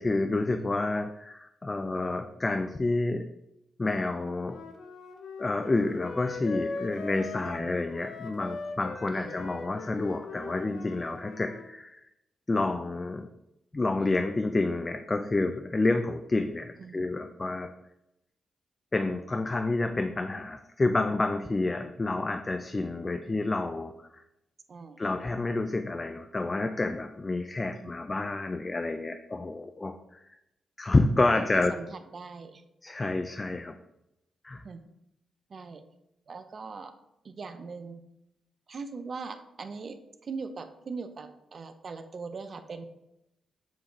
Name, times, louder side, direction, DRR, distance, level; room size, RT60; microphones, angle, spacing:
voice 1, 0.0-3.3 3.8-4.6 5.4-12.1 12.5-13.3 13.7-17.7 18.9-24.2 25.0-30.2 30.8-31.8 32.8-33.7 34.4-34.6, left 2 dB, 30° left, 6 dB, 0.3 m, -29 dB
Wind instrument woodwind instrument, 4.3-11.6, left 4 dB, 80° left, 0.5 m, -40 dB
voice 2, 7.4-7.7 9.2-9.4 16.8-17.1 24.7-25.0 27.7-28.0 31.4-32.6 34.6-34.8 35.5-35.8 36.3-36.9 37.2-38.0 38.7-42.9, right 4 dB, 55° right, 8 dB, 0.5 m, -41 dB
7.2 x 2.4 x 3.0 m, 0.85 s
supercardioid pair, 55°, 0 cm